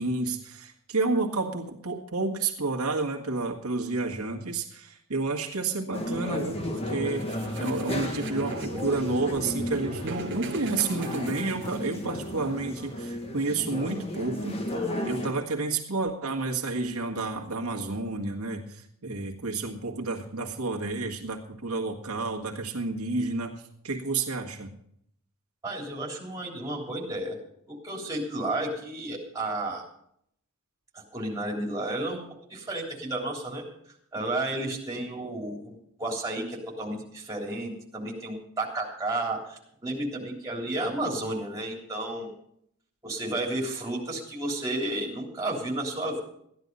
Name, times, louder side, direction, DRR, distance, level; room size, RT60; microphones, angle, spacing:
voice 1, 0.0-14.6 15.0-24.7, right 3 dB, 90° right, 1 dB, 1.8 m, -30 dB
sound 1, 5.9-15.3, left 1 dB, 30° left, 1.7 m, -34 dB
sound 2, 7.2-12.1, right 3 dB, 60° right, 1.3 m, -39 dB
voice 2, 25.6-27.4 27.7-29.9 30.9-32.2 32.5-33.6 34.1-42.3 43.0-46.2, right 1 dB, 15° right, -1 dB, 3.3 m, -32 dB
14.5 x 11.0 x 5.4 m, 0.70 s
head